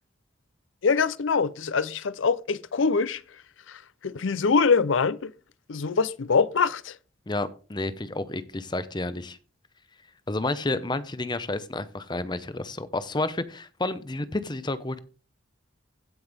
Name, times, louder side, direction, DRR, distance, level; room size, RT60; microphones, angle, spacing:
voice 1, 0.8-3.2 3.7-5.3 5.7-7.0, left 5 dB, 75° left, 0.6 m, -24 dB
voice 2, 7.3-9.4 10.3-15.0, left 2 dB, 20° left, 0.7 m, -30 dB
16.0 x 5.6 x 3.5 m
head